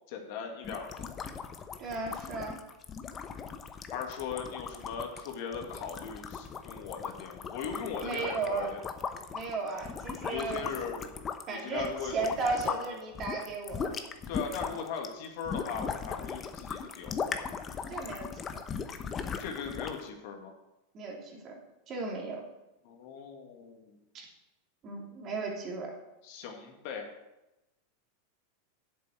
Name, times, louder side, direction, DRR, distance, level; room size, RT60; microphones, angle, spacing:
voice 1, 0.1-1.1 3.9-8.8 10.3-11.1 11.5-12.2 12.6-12.9 14.3-17.2 19.4-20.5 22.8-24.0 26.2-27.1, left 6 dB, 60° left, 3 dB, 2.0 m, -39 dB
sound 1, 0.6-12.8 13.1-20.0, left 6 dB, 25° left, 0.9 m, -38 dB
voice 2, 1.8-2.6 8.0-8.7 9.3-10.7 11.5-14.0 17.9-18.6 20.9-21.5 21.9-22.4 24.1-24.3 24.8-25.9, right 3 dB, 35° right, 0 dB, 2.8 m, -35 dB
8.4 x 7.5 x 6.3 m, 0.97 s
hypercardioid pair, 115°, 0 cm